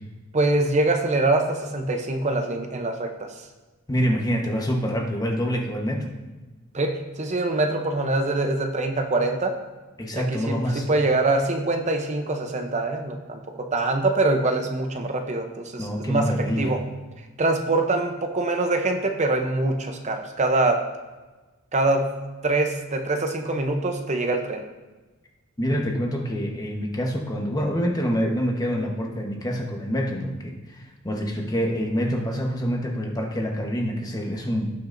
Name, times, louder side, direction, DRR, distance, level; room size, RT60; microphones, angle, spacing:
voice 1, 0.3-3.5 6.7-9.6 10.1-16.8 17.2-20.9 21.7-24.6, right 2 dB, 35° right, 4 dB, 0.7 m, -24 dB
voice 2, 3.9-6.1 10.0-10.9 15.8-16.7 25.6-34.7, equal, 20° left, 1 dB, 1.1 m, -26 dB
17.5 x 5.8 x 2.6 m, 1.2 s
head